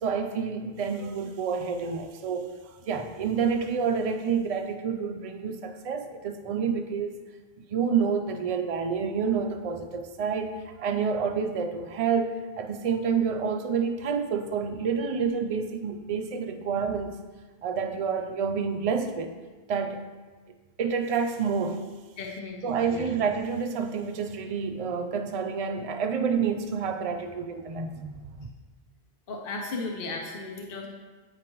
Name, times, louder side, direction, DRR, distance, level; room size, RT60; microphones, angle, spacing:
voice 1, 0.0-7.2 7.6-17.2 17.6-19.4 19.7-20.1 20.8-21.9 22.6-28.5, right 6 dB, 45° right, 6 dB, 0.5 m, -28 dB
voice 2, 22.2-23.1 29.3-30.9, left 3 dB, 65° left, 0 dB, 1.0 m, -35 dB
8.8 x 5.0 x 3.0 m, 1.3 s
omnidirectional pair, 1.1 m